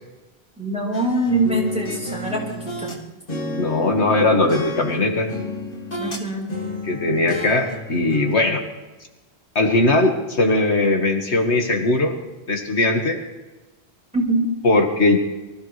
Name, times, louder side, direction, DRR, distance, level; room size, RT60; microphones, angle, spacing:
voice 1, 0.6-2.4 2.8-2.9 6.0-6.5 14.1-14.4, right 2 dB, 5° right, -3 dB, 4.6 m, -23 dB
sound 1, 0.9-3.0 3.3-6.2 6.5-8.3, left 2 dB, 55° left, 2.0 m, -31 dB
voice 2, 3.5-5.3 6.8-8.6 9.6-12.2 12.5-13.2 14.6-15.2, left 2 dB, 85° left, 3 dB, 2.0 m, -19 dB
24.5 x 15.0 x 3.3 m, 1.1 s
omnidirectional pair, 1.1 m